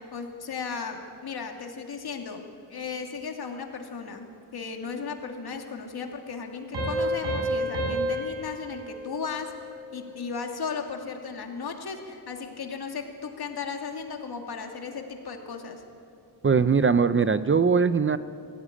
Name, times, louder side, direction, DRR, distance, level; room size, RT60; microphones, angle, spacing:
voice 1, 0.1-2.4 2.7-9.5 9.9-15.8, left 5 dB, 65° left, 3 dB, 2.5 m, -35 dB
Piano, 6.7-10.0, right 1 dB, 85° right, 7.5 m, -30 dB
voice 2, 16.4-18.2, right 5 dB, 30° right, 13 dB, 0.5 m, -21 dB
22.5 x 16.0 x 9.9 m, 2.5 s
wide cardioid pair, 140°, 40 cm